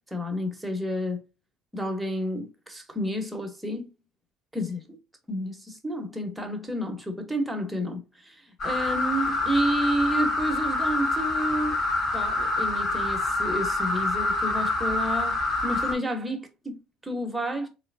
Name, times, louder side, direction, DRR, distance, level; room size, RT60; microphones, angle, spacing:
voice 1, 0.1-1.2 1.7-3.9 4.5-4.8 5.3-11.8 12.1-17.7, equal, 5° right, 1.3 m, -30 dB
sound 1, 8.6-15.9, left 2 dB, 45° left, 2.0 m, -26 dB
3.7 x 3.2 x 2.7 m
hypercardioid pair, 65°, 0 cm